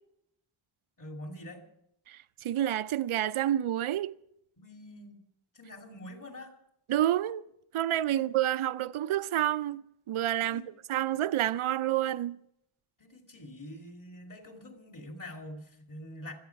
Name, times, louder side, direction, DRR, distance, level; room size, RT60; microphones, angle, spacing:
voice 1, 1.0-1.6 4.6-5.2 5.5-6.6 8.1-8.3 10.5-10.7 13.0-16.3, left 1 dB, 40° left, 2.6 m, -45 dB
voice 2, 2.1-4.1 6.9-7.4 7.7-10.6 10.9-12.4, right 12 dB, 80° right, 0.6 m, -29 dB
25.5 x 8.8 x 5.8 m
wide cardioid pair, 165°, 50 cm